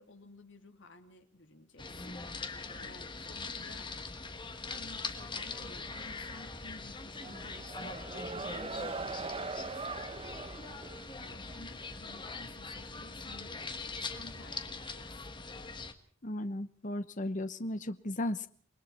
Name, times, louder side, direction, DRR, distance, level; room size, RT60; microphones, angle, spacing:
voice 1, 0.0-2.2 2.8-3.9 4.7-10.5 11.2-15.4, left 2 dB, 80° left, 5 dB, 3.3 m, -54 dB
sound 1, 1.8-15.9, left 3 dB, 25° left, 1.5 m, -42 dB
sound 2, 7.2-11.7, right 4 dB, 30° right, 0.9 m, -41 dB
voice 2, 16.2-18.5, left 1 dB, 40° left, 12 dB, 1.0 m, -35 dB
28.5 x 21.0 x 4.4 m, 0.43 s
head